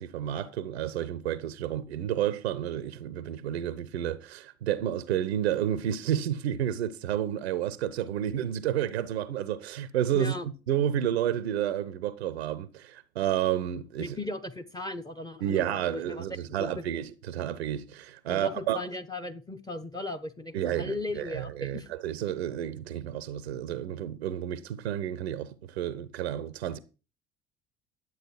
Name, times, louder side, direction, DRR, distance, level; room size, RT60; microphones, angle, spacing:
voice 1, 0.0-14.2 15.4-18.8 20.5-26.8, right 10 dB, 70° right, 0.7 m, -31 dB
voice 2, 10.1-10.4 14.0-16.3 16.6-16.8 18.3-21.9, left 2 dB, 10° left, 0.9 m, -37 dB
11.0 x 7.9 x 4.7 m
figure-of-eight pair, 60°, 33 cm